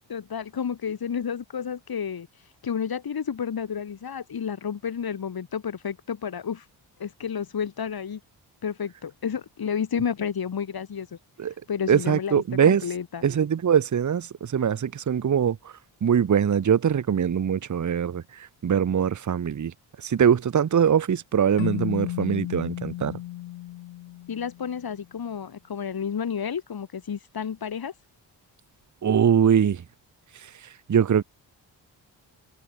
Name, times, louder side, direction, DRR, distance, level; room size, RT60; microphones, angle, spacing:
voice 1, 0.1-2.3 2.6-6.7 7.0-8.2 8.6-11.2 11.7-13.2 24.3-27.9, left 7 dB, 50° left, 2.3 m, -31 dB
voice 2, 11.9-12.8 13.2-14.3 14.5-15.6 16.0-18.2 18.6-19.7 20.0-23.1 29.0-29.8 30.9-31.2, right 8 dB, 40° right, 1.0 m, -22 dB
Keyboard (musical), 21.6-24.8, left 16 dB, 80° left, 0.7 m, -34 dB
cardioid pair, 55°, 45 cm